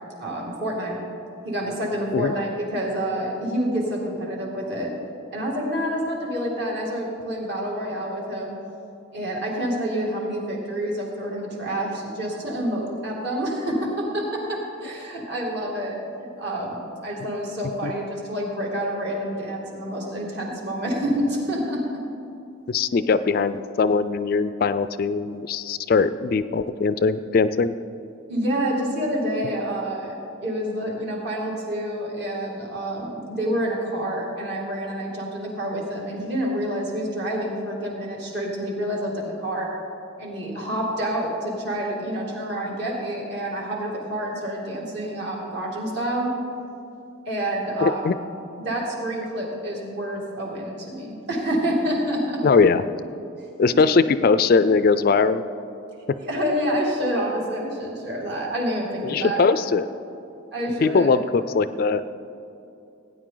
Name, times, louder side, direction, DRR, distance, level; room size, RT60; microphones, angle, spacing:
voice 1, 0.2-1.0 1.4-4.9 5.3-8.6 9.1-21.8 28.3-30.1 30.4-39.7 40.2-46.3 47.3-48.0 48.6-52.4 53.7-53.8 56.2-59.4 60.5-61.1, equal, 55° right, -2 dB, 2.4 m, -28 dB
voice 2, 22.7-27.7 47.8-48.1 52.4-52.8 53.6-55.4 59.0-59.9 60.8-62.1, left 4 dB, 45° left, 13 dB, 0.3 m, -20 dB
17.5 x 9.6 x 3.9 m, 2.7 s
head